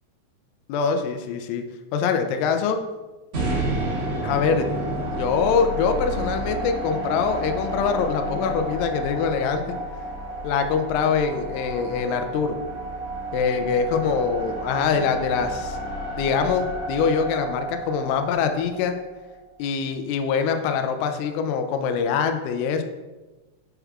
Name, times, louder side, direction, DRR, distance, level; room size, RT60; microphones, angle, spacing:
voice 1, 0.7-1.6 1.9-2.8 4.2-4.7 5.1-9.6 10.4-12.6 13.3-15.8 16.2-18.9 19.6-22.8, left 6 dB, 85° left, 6 dB, 2.8 m, -24 dB
sound 1, 3.3-19.5, right 1 dB, 75° right, 1.4 m, -31 dB
7.2 x 6.9 x 2.3 m, 1.1 s
omnidirectional pair, 5.9 m